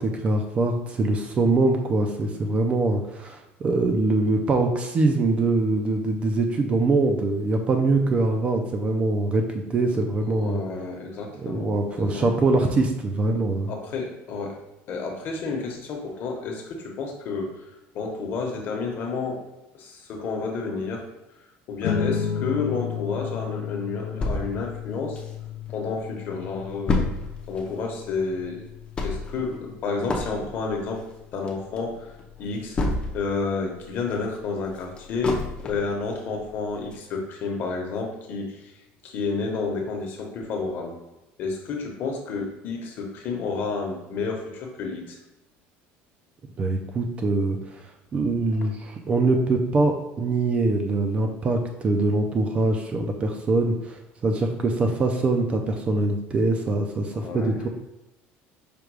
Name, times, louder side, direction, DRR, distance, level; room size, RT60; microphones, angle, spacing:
voice 1, 0.0-10.6 11.4-13.7 46.6-57.7, right 2 dB, 25° right, 4 dB, 0.4 m, -23 dB
voice 2, 10.4-12.3 13.7-14.6 14.9-17.6 17.9-19.4 19.8-21.1 21.7-25.2 25.7-27.0 27.5-28.6 29.0-31.1 31.3-32.1 32.4-32.8 33.1-38.7 39.0-40.9 41.4-45.2 57.1-57.5, left 4 dB, 45° left, 1 dB, 1.0 m, -30 dB
sound 1, 21.8-32.6, left 7 dB, 75° left, 0.4 m, -34 dB
sound 2, 24.2-25.7 26.1-26.2 26.4-33.4 33.8-36.0 36.4-36.5 36.9-37.0, left 2 dB, 20° left, 0.6 m, -30 dB
5.1 x 2.3 x 4.6 m, 0.96 s
cardioid pair, 160°, 5 cm